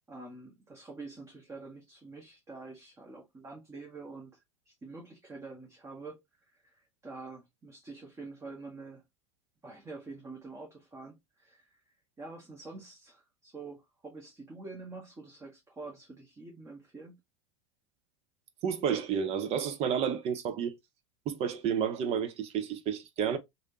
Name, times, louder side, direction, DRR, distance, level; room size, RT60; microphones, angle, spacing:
voice 1, 0.1-9.0 9.6-11.8 12.2-17.2, right 3 dB, 20° right, 1.2 m, -47 dB
voice 2, 18.6-20.8 21.3-23.4, right 8 dB, 45° right, 0.7 m, -31 dB
3.1 x 2.7 x 2.8 m
hypercardioid pair, 90°, 16 cm